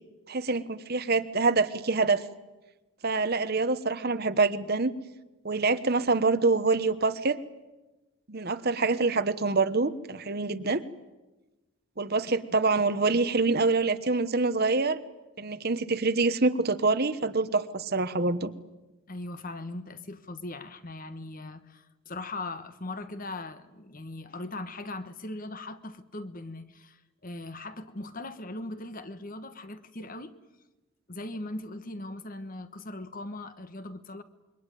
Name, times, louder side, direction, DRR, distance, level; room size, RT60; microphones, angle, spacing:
voice 1, 0.3-2.2 3.0-4.9 5.4-7.4 8.3-10.8 12.0-15.0 15.4-18.5, right 3 dB, 45° right, 1.1 m, -26 dB
voice 2, 19.1-30.4 31.1-34.2, left 2 dB, 40° left, 1.3 m, -39 dB
27.0 x 23.5 x 9.2 m
head